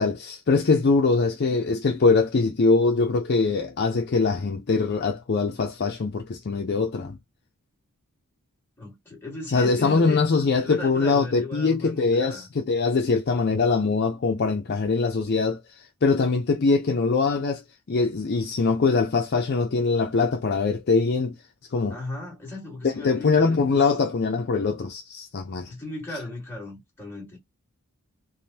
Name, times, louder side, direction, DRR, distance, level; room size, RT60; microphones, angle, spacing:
voice 1, 0.0-7.2 9.5-15.6 16.0-17.6 17.9-21.3 21.7-22.0 23.0-25.7, left 4 dB, 50° left, 0.5 m, -22 dB
voice 2, 8.8-10.2 10.6-12.5 21.9-23.8 25.7-27.4, left 2 dB, 10° left, 1.7 m, -37 dB
3.4 x 2.1 x 2.8 m
head